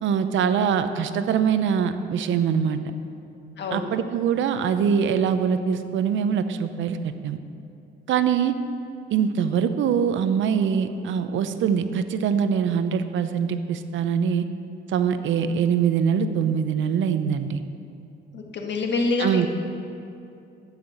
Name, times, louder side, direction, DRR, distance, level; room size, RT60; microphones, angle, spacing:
voice 1, 0.0-2.8 3.7-7.4 8.1-8.5 9.1-14.4 14.9-17.6 19.2-19.5, right 7 dB, 75° right, 10 dB, 0.7 m, -23 dB
voice 2, 3.6-4.0 18.3-19.5, left 3 dB, 60° left, 2 dB, 1.7 m, -26 dB
13.0 x 5.8 x 7.8 m, 2.6 s
cardioid pair, 90°, 20 cm